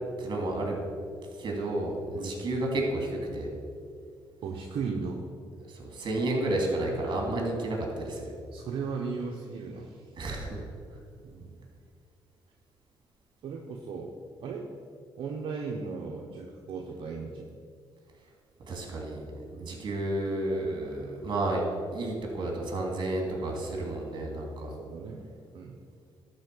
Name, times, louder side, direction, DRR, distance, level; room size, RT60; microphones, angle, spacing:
voice 1, 0.2-0.7 1.4-3.5 5.7-8.3 10.2-10.6 18.7-21.6 21.9-24.7, right 1 dB, 50° right, 0 dB, 2.9 m, -31 dB
voice 2, 2.1-2.4 4.4-5.2 8.5-10.1 11.2-11.7 13.4-14.1 14.4-14.7 15.2-17.5 19.5-19.8 24.8-25.2 25.5-25.8, right 5 dB, 70° right, 0 dB, 1.0 m, -36 dB
12.0 x 4.4 x 6.9 m, 2.2 s
cardioid pair, 80°, 9 cm